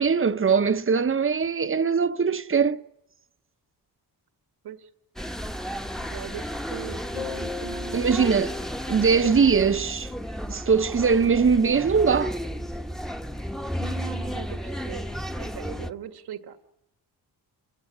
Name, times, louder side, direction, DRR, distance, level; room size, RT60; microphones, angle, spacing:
voice 1, 0.0-2.8 7.9-8.5 8.9-10.1 10.5-12.3, right 5 dB, 35° right, 0.9 m, -21 dB
sound 1, 5.2-15.9, equal, ahead, 1.0 m, -33 dB
voice 2, 6.0-8.3 13.8-16.6, right 10 dB, 75° right, 1.6 m, -40 dB
sound 2, 7.2-8.7, left 10 dB, 85° left, 0.9 m, -40 dB
27.5 x 16.5 x 9.7 m
cardioid pair, 80°, 39 cm